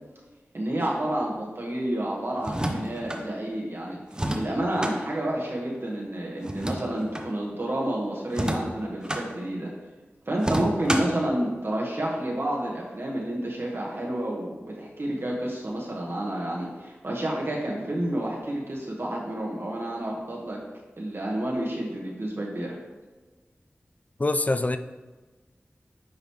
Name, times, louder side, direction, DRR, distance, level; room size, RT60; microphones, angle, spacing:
voice 1, 0.5-4.0 4.3-9.7 10.3-20.6 21.0-22.8, right 1 dB, 60° right, -3 dB, 1.5 m, -29 dB
sound 1, 2.4-3.2 4.1-5.0 6.4-7.3 8.3-9.2 10.4-11.2, right 1 dB, 20° right, 0.8 m, -29 dB
voice 2, 24.2-24.8, left 2 dB, 35° left, 10 dB, 0.4 m, -24 dB
8.7 x 4.0 x 3.1 m, 1.3 s
cardioid pair, 45°, 4 cm